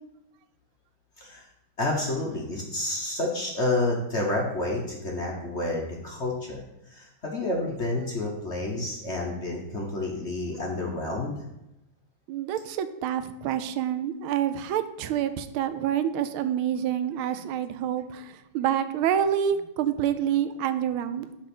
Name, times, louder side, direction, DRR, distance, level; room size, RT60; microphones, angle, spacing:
voice 1, 1.8-11.4, left 2 dB, 45° left, -1 dB, 1.0 m, -29 dB
voice 2, 12.3-21.3, right 9 dB, 85° right, 11 dB, 1.4 m, -27 dB
5.9 x 5.3 x 6.0 m, 0.89 s
omnidirectional pair, 2.3 m